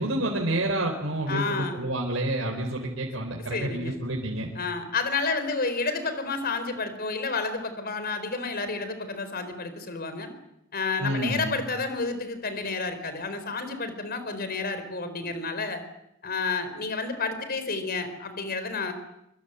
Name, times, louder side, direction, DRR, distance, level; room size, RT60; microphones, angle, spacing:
voice 1, 0.0-4.5 11.0-11.6, right 1 dB, 80° right, 0 dB, 4.1 m, -29 dB
voice 2, 1.3-1.8 3.4-4.0 4.5-10.3 10.7-15.8 16.2-18.9, left 4 dB, 50° left, 10 dB, 4.4 m, -30 dB
25.5 x 24.5 x 8.2 m, 0.81 s
head